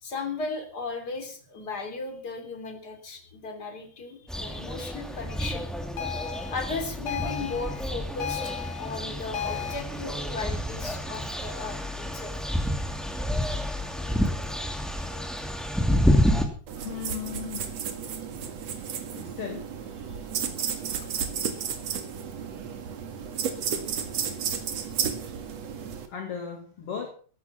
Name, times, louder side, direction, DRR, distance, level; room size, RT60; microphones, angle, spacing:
voice 1, 0.0-5.7 6.5-12.3 14.8-15.2 16.2-16.3 18.7-18.9 20.1-20.2, left 3 dB, 25° left, 5 dB, 3.5 m, -36 dB
sound 1, 4.3-16.4, equal, ahead, 1.3 m, -29 dB
sound 2, 6.0-9.8, left 10 dB, 65° left, 3.3 m, -35 dB
voice 2, 16.7-17.8 19.1-19.7 26.1-27.1, left 7 dB, 45° left, 4 dB, 2.7 m, -36 dB
sound 3, 16.7-26.1, right 7 dB, 50° right, 2.6 m, -33 dB
15.0 x 12.5 x 5.9 m, 0.42 s
omnidirectional pair, 4.5 m